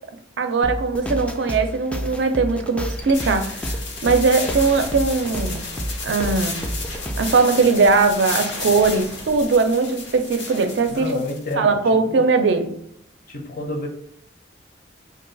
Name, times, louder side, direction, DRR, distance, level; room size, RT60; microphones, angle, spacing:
voice 1, 0.4-3.7 4.0-5.7 6.0-6.7 7.2-11.2 11.6-12.8, right 4 dB, 70° right, 0.4 m, -20 dB
sound 1, 0.6-7.5, equal, 5° left, 0.3 m, -30 dB
sound 2, 3.1-11.5, left 3 dB, 90° left, 0.8 m, -32 dB
voice 2, 10.9-11.8 12.1-12.2 13.3-13.9, left 2 dB, 50° left, 0.6 m, -29 dB
2.7 x 2.3 x 3.8 m
head